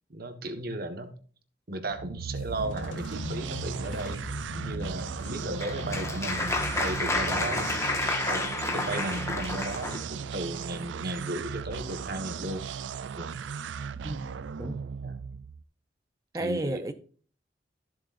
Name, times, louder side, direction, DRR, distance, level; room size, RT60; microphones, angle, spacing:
voice 1, 0.1-1.1 1.7-4.2 4.5-8.0 8.3-12.6 13.1-13.4 15.0-15.2 16.3-16.8, right 1 dB, 55° right, 1.4 m, -35 dB
sound 1, 1.9-15.6, right 6 dB, 80° right, 0.4 m, -37 dB
sound 2, 2.3-8.2, left 1 dB, 85° left, 2.6 m, -39 dB
Applause, 5.2-10.0, left 2 dB, 15° left, 1.5 m, -30 dB
voice 2, 14.0-14.8 16.3-16.9, right 1 dB, 20° right, 0.6 m, -33 dB
14.0 x 7.6 x 2.6 m
head